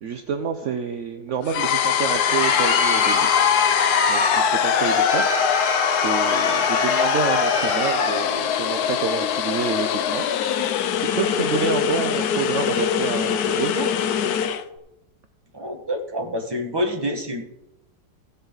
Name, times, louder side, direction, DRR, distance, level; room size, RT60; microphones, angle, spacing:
voice 1, 0.0-3.3 4.1-5.3 5.9-10.3 11.0-13.9, right 6 dB, 60° right, 7 dB, 0.8 m, -28 dB
sound 1, 1.4-14.6, left 9 dB, 65° left, 1.1 m, -23 dB
Crowd, 1.9-8.4, left 4 dB, 50° left, 1.3 m, -23 dB
voice 2, 15.5-17.4, equal, 15° right, 1 dB, 1.5 m, -27 dB
16.5 x 8.0 x 4.0 m, 0.91 s
omnidirectional pair, 2.0 m